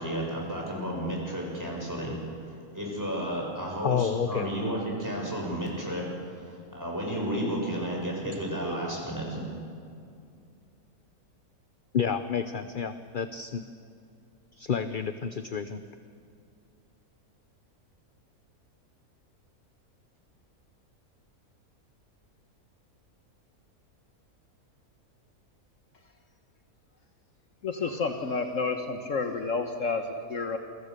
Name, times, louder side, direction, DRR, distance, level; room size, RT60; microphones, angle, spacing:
voice 1, 0.0-2.2 2.4-6.0 6.3-9.4, equal, 10° right, -2 dB, 7.2 m, -32 dB
voice 2, 3.8-4.5 11.9-13.6 14.6-15.8, left 7 dB, 45° left, 10 dB, 0.8 m, -29 dB
voice 3, 27.6-30.6, left 4 dB, 60° left, 6 dB, 1.6 m, -30 dB
28.5 x 24.5 x 6.7 m, 2.4 s
omnidirectional pair, 1.6 m